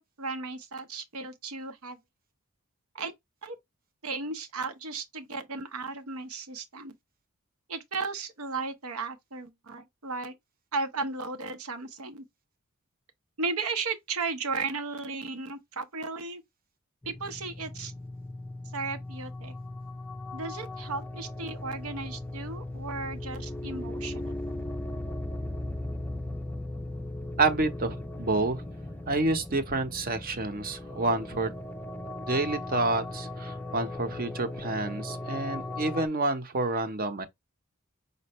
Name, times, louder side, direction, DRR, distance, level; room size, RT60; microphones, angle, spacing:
voice 1, 0.0-2.0 2.9-3.1 3.4-3.6 4.0-6.9 7.7-10.4 10.7-12.2 13.4-16.4 17.0-17.9 18.7-19.5 20.3-24.4, right 4 dB, 80° right, 0.9 m, -35 dB
sound 1, 17.0-36.1, left 2 dB, 10° left, 0.4 m, -38 dB
voice 2, 27.4-28.6 29.1-31.5 32.3-37.3, right 2 dB, 45° right, 0.9 m, -28 dB
5.3 x 2.4 x 3.0 m
head